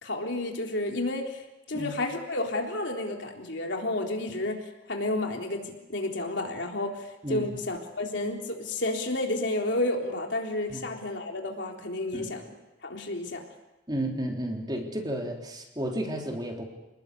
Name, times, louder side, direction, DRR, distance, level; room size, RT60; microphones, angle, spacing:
voice 1, 0.0-12.4 12.8-13.4, left 2 dB, 65° left, 1 dB, 3.8 m, -31 dB
voice 2, 13.9-16.7, right 1 dB, 20° right, 1 dB, 3.6 m, -32 dB
28.0 x 20.0 x 8.4 m, 0.97 s
head